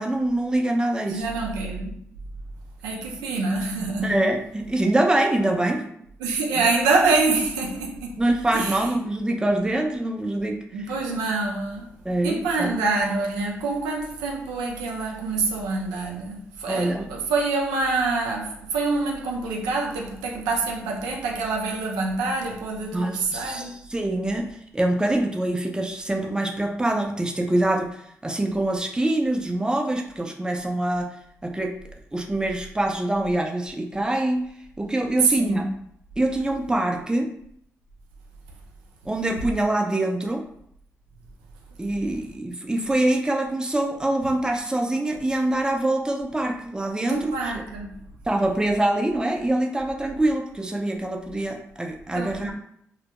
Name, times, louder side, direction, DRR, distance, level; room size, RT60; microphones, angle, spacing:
voice 1, 0.0-1.2 4.0-5.9 8.2-10.6 12.0-12.7 16.7-17.1 22.9-24.5 24.7-31.2 31.4-31.8 32.1-34.5 34.8-35.7 36.2-37.3 39.1-40.5 41.8-47.6 48.3-52.5, right 1 dB, 10° right, 0.5 m, -24 dB
voice 2, 1.1-1.9 2.8-4.3 6.2-8.2 8.5-8.8 10.7-11.9 12.2-23.7 35.2-35.7 47.1-47.9 52.1-52.5, right 3 dB, 85° right, 0.4 m, -26 dB
2.1 x 2.1 x 2.8 m
hypercardioid pair, 40°, 6 cm